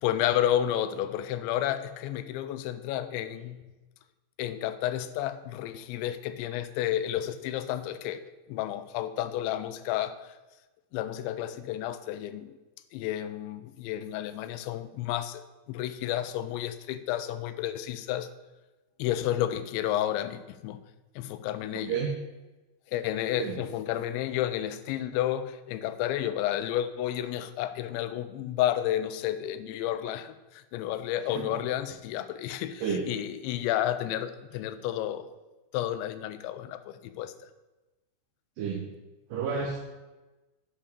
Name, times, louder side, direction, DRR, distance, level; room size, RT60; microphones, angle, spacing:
voice 1, 0.0-3.6 4.4-10.2 10.9-12.6 12.9-15.4 15.7-18.3 19.0-20.8 21.2-22.0 22.9-35.3 35.7-37.5, left 12 dB, 90° left, 2.9 m, -31 dB
voice 2, 21.7-22.1 23.4-23.6 31.5-31.6 32.8-33.1 38.6-38.9 39.3-39.8, right 6 dB, 70° right, 2.1 m, -30 dB
8.4 x 5.6 x 6.6 m
omnidirectional pair, 5.2 m